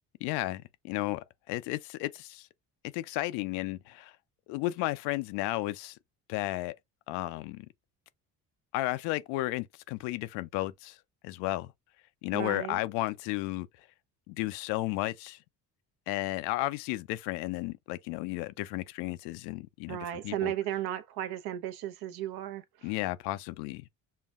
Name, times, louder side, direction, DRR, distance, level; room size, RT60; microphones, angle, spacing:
voice 1, 0.2-2.5 2.9-4.1 4.5-6.0 6.3-6.7 7.1-7.7 8.7-11.0 11.2-11.7 12.2-13.7 14.3-15.4 16.1-20.0 20.2-20.5 22.8-23.8, left 18 dB, 85° left, 0.5 m, -33 dB
voice 2, 12.3-12.8 19.9-22.9, right 12 dB, 70° right, 0.8 m, -35 dB
5.7 x 2.2 x 2.3 m
supercardioid pair, 85°, 39 cm